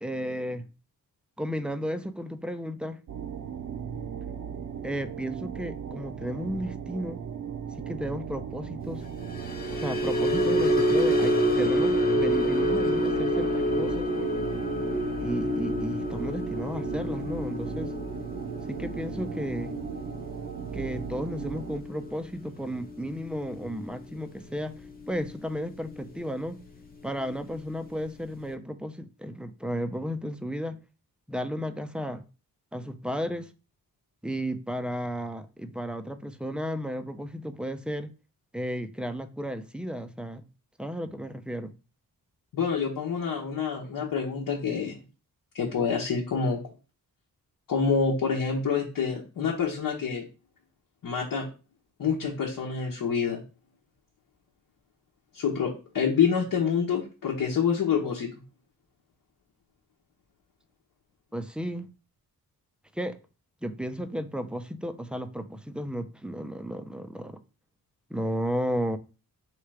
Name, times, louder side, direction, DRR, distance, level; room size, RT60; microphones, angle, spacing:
voice 1, 0.0-0.7 1.4-3.0 4.8-7.2 7.8-9.1 9.7-14.1 15.2-17.9 18.7-19.8 20.7-26.6 27.0-30.8 31.3-32.2 32.7-33.5 34.2-38.1 38.5-40.5 40.8-41.7 61.3-61.9 62.9-63.2 63.6-67.4 68.1-69.0, equal, 5° right, 0.4 m, -33 dB
sound 1, 3.1-21.8, right 8 dB, 55° right, 0.7 m, -37 dB
sound 2, 9.2-25.6 25.9-26.2 26.6-26.8, equal, 25° left, 0.8 m, -28 dB
voice 2, 42.5-45.0 45.5-46.6 47.7-50.2 51.0-51.5 52.0-53.4 55.3-58.3, left 6 dB, 65° left, 1.0 m, -27 dB
3.2 x 3.2 x 4.8 m
wide cardioid pair, 100°, 36 cm